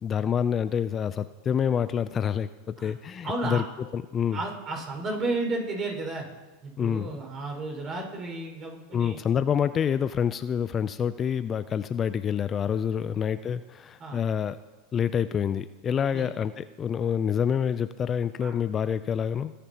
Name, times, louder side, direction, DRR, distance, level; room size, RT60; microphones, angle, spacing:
voice 1, 0.0-3.6 3.9-4.4 6.8-7.2 8.9-14.6 14.9-19.5, left 8 dB, 30° left, 13 dB, 0.4 m, -27 dB
voice 2, 3.2-3.6 4.3-6.2 6.6-9.2 14.0-14.2 16.1-16.3 18.4-18.5, right 2 dB, 35° right, 0 dB, 5.3 m, -32 dB
22.0 x 9.9 x 2.9 m, 1.2 s
hypercardioid pair, 105°, 0 cm